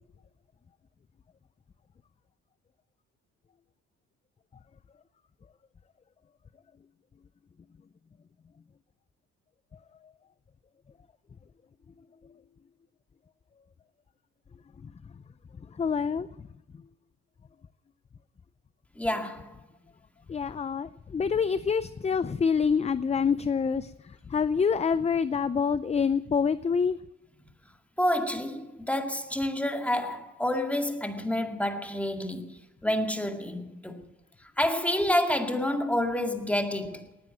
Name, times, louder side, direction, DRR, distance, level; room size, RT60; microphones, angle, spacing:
voice 1, 15.8-16.3 20.3-23.9 24.3-27.0, left 6 dB, 20° left, 0.5 m, -26 dB
voice 2, 19.0-19.6 28.0-34.1 34.4-37.1, left 1 dB, 5° left, 2.1 m, -29 dB
19.0 x 9.5 x 7.5 m
cardioid pair, 90°, 30 cm